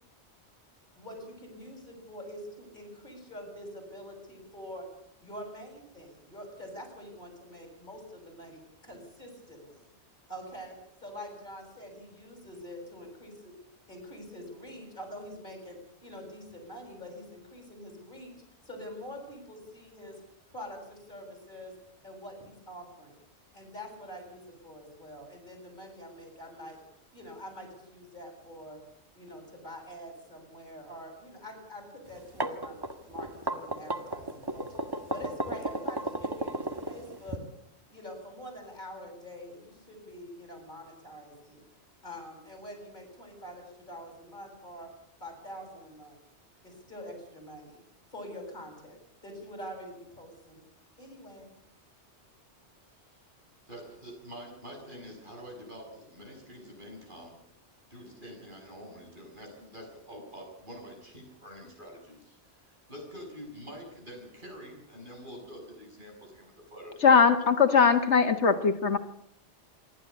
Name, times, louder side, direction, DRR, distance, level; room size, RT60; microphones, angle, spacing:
voice 1, 0.9-4.8 5.2-9.9 10.3-13.5 13.9-18.3 18.6-20.2 20.5-21.7 22.0-23.2 23.5-26.8 27.1-28.8 29.2-32.8 33.0-34.8 35.1-37.4 37.9-41.6 42.0-44.9 45.2-46.2 46.6-47.8 48.1-49.0 49.2-50.6 51.0-51.6, equal, 45° left, 3 dB, 8.2 m, -45 dB
sound 1, 32.1-37.4, right 1 dB, 20° right, 1.7 m, -33 dB
voice 2, 53.7-57.3 57.9-67.2, equal, 45° right, 1 dB, 7.3 m, -46 dB
voice 3, 67.0-69.0, left 6 dB, 80° left, 7 dB, 1.7 m, -21 dB
27.5 x 12.5 x 8.5 m, 0.75 s
omnidirectional pair, 1.2 m